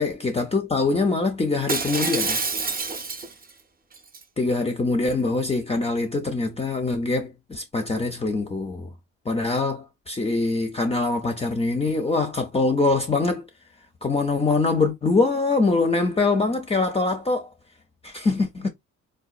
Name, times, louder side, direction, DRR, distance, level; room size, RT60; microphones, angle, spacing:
voice 1, 0.0-2.4 4.4-8.9 9.3-13.5 14.0-17.5 18.0-18.7, left 3 dB, 20° left, 0.5 m, -23 dB
Shatter, 1.7-3.5 3.9-4.2, right 4 dB, 30° right, 0.7 m, -27 dB
3.8 x 2.3 x 2.4 m
cardioid pair, 90°, 30 cm